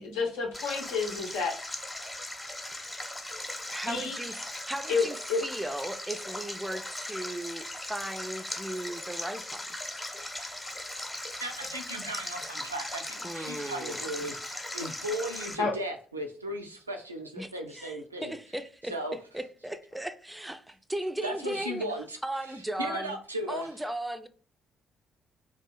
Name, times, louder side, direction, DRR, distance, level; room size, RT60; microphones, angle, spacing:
voice 1, 0.0-1.5 3.9-4.2 4.9-5.4 15.6-15.7, left 4 dB, 70° left, 0.7 m, -29 dB
Stream, 0.5-15.6, left 1 dB, 15° left, 0.8 m, -39 dB
voice 2, 3.7-9.6 13.2-14.4 17.4-21.9 22.2-23.2 23.5-24.3, right 1 dB, 10° right, 0.4 m, -37 dB
voice 3, 11.4-18.3 18.9-19.2 21.2-22.2 22.8-23.7, right 1 dB, 90° right, 0.4 m, -36 dB
2.8 x 2.4 x 3.8 m
figure-of-eight pair, 45°, 0 cm